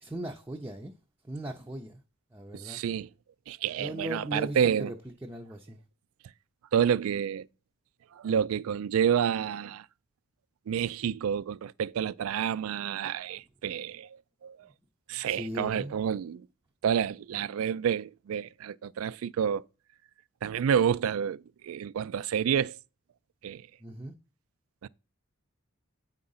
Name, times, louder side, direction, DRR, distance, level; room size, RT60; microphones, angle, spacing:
voice 1, 0.0-0.9 1.2-2.0 2.3-2.8 3.8-5.0 5.2-5.8 15.2-16.0 23.8-24.1, right 1 dB, 10° right, 0.5 m, -38 dB
voice 2, 2.5-3.1 3.5-4.9 6.7-7.5 8.1-9.9 10.7-14.7 15.1-16.5 16.8-19.6 20.4-22.8 23.4-23.6 24.8-24.9, right 8 dB, 75° right, 0.3 m, -29 dB
8.7 x 3.8 x 5.5 m
head